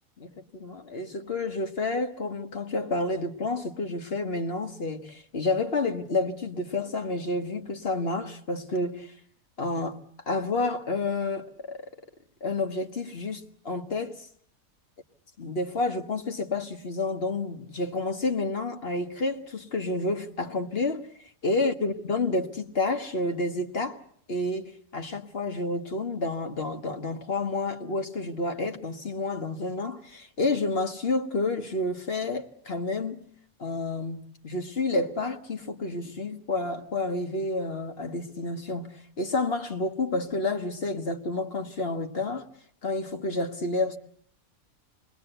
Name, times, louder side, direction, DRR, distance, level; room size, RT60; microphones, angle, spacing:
voice 1, 0.2-9.1 9.6-10.0 10.3-11.8 12.4-14.3 15.4-21.1 21.4-24.0 24.3-33.2 33.6-42.5 42.8-44.0, left 2 dB, 45° left, 1.7 m, -30 dB
28.5 x 21.0 x 8.0 m
omnidirectional pair, 1.5 m